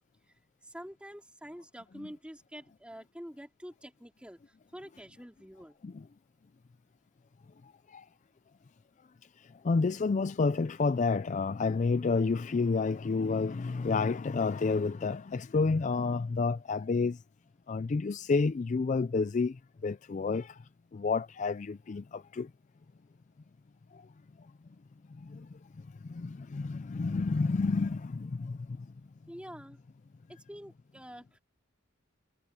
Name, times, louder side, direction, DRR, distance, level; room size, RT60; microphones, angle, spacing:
voice 1, 0.6-5.8 29.3-29.8 30.3-31.4, equal, 5° right, 3.6 m, -47 dB
voice 2, 9.6-17.2 17.7-20.6 20.9-22.5 23.9-24.0 25.2-25.5 26.0-28.9, left 4 dB, 35° left, 0.4 m, -30 dB
head